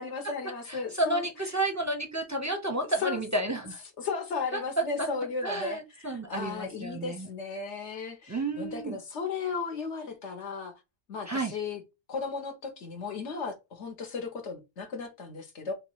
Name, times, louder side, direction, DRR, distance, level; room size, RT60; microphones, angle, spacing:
voice 1, 0.0-1.2 3.0-3.2 4.0-10.7 11.1-11.8 12.1-15.7, left 4 dB, 70° left, 1.3 m, -35 dB
voice 2, 0.7-3.8 4.5-5.1 5.4-7.3 8.3-9.0 11.3-11.5, right 2 dB, 20° right, 0.6 m, -31 dB
3.1 x 3.1 x 4.5 m
omnidirectional pair, 1.2 m